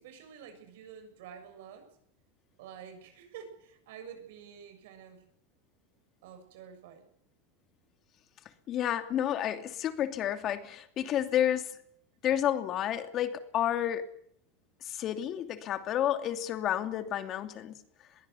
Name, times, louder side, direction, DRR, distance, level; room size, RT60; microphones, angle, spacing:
voice 1, 0.0-2.0 2.6-5.2 6.2-7.1, right 8 dB, 75° right, 7 dB, 7.1 m, -49 dB
voice 2, 8.7-11.7 12.2-14.1 14.8-17.7, left 10 dB, 40° left, 8 dB, 2.7 m, -30 dB
21.5 x 16.0 x 9.7 m, 0.67 s
supercardioid pair, 120°, 0 cm